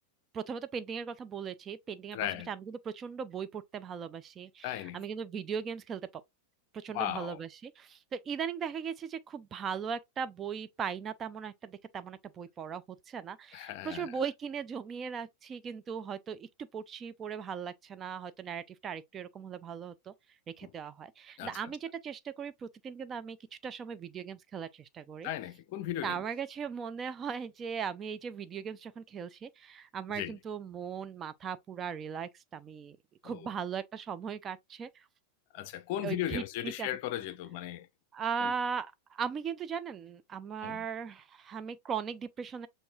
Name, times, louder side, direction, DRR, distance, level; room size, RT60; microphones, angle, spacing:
voice 1, 0.3-2.2 2.5-6.2 6.7-20.1 20.6-23.4 23.6-25.3 26.0-33.0 33.2-35.0 36.0-36.9 38.1-42.7, right 7 dB, 25° right, 0.4 m, -38 dB
voice 2, 2.1-2.5 4.6-5.0 6.9-7.4 13.5-14.2 20.6-20.7 21.4-21.7 25.2-26.2 30.1-30.4 33.2-33.5 35.5-37.9 38.4-38.5 40.6-40.9, left 12 dB, 50° left, 0.5 m, -37 dB
6.8 x 2.6 x 2.4 m
figure-of-eight pair, 90°, 0 cm